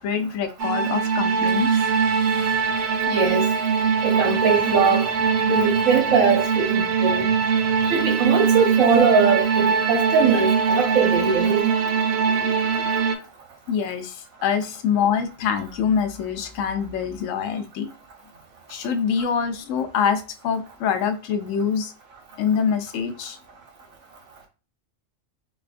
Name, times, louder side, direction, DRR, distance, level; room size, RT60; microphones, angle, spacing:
voice 1, 0.0-1.9 12.3-12.5 13.7-17.9 18.7-21.9 22.4-23.4, left 7 dB, 75° left, 0.9 m, -25 dB
sound 1, 0.6-13.1, right 6 dB, 65° right, 0.7 m, -22 dB
voice 2, 3.1-3.5 4.0-5.1 5.4-7.3 7.9-11.7, right 5 dB, 90° right, 1.3 m, -21 dB
4.0 x 2.3 x 2.4 m
omnidirectional pair, 1.4 m